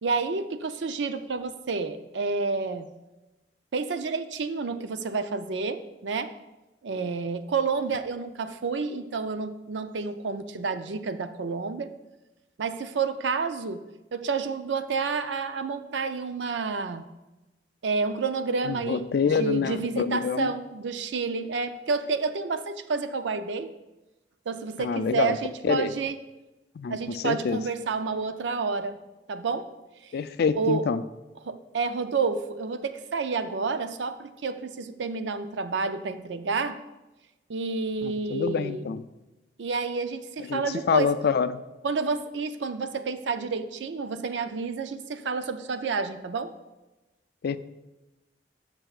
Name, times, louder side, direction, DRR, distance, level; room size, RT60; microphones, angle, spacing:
voice 1, 0.0-2.8 3.7-6.3 6.8-11.9 12.6-13.8 14.1-17.1 17.8-23.7 24.5-26.1 26.9-29.0 29.3-29.7 30.5-30.8 31.5-36.8 37.5-38.9 39.6-41.1 41.8-46.5, right 4 dB, 80° right, 10 dB, 0.5 m, -29 dB
voice 2, 18.6-20.5 24.8-25.4 25.6-25.9 26.8-27.6 30.1-31.0 38.0-39.0 40.4-41.6 47.4-47.6, left 6 dB, 60° left, 13 dB, 0.3 m, -26 dB
13.5 x 5.6 x 2.4 m, 1.1 s
head